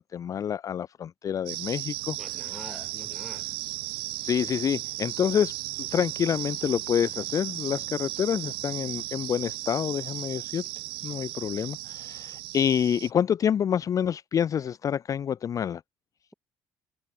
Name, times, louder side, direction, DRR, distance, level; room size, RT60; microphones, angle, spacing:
voice 1, 0.0-2.2 4.2-10.6 11.0-15.8, left 8 dB, 40° left, 0.4 m, -27 dB
sound 1, 1.5-13.1, right 22 dB, 80° right, 0.9 m, -36 dB
voice 2, 2.2-3.5, equal, ahead, 3.6 m, -45 dB
supercardioid pair, 80°, 9 cm